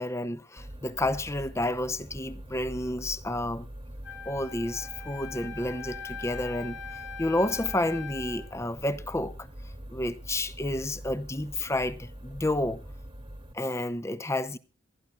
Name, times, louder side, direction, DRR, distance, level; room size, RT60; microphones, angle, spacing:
voice 1, 0.0-3.7 4.3-6.8 7.2-9.3 9.9-12.8 13.5-14.6, left 1 dB, 15° left, 0.7 m, -30 dB
sound 1, 0.6-13.5, equal, 25° right, 1.3 m, -44 dB
Wind instrument woodwind instrument, 4.0-8.5, left 5 dB, 65° left, 3.5 m, -42 dB
27.5 x 10.5 x 2.6 m
head